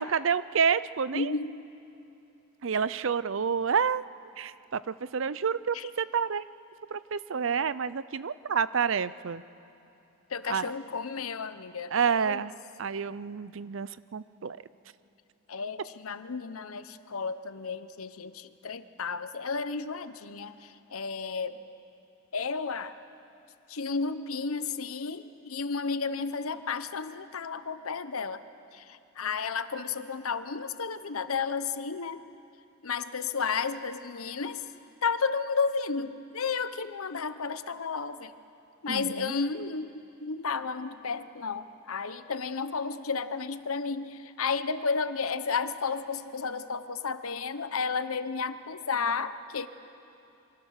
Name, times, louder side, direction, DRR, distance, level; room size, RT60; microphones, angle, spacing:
voice 1, 0.0-1.3 2.6-4.1 4.4-6.4 6.9-9.4 10.5-10.7 11.9-12.5 12.8-14.6 38.9-39.3, right 6 dB, 60° right, 17 dB, 0.5 m, -29 dB
voice 2, 1.1-1.6 5.7-5.8 10.3-12.4 15.5-20.5 20.9-21.6 22.3-22.9 23.7-28.4 28.7-32.2 32.8-34.6 35.0-38.3 38.8-49.7, left 5 dB, 80° left, 12 dB, 0.9 m, -32 dB
27.0 x 24.0 x 6.6 m, 2.8 s
head